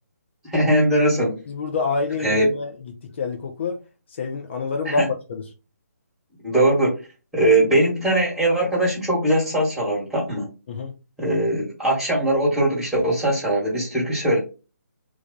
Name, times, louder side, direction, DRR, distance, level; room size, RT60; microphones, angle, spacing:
voice 1, 0.5-1.4 2.2-2.5 4.8-5.1 6.4-6.9 7.3-10.5 11.2-14.4, right 1 dB, 5° right, 1.4 m, -20 dB
voice 2, 1.5-3.8 4.2-5.4 10.7-10.9, left 4 dB, 45° left, 0.6 m, -27 dB
3.2 x 2.3 x 3.8 m
figure-of-eight pair, 155°, 9 cm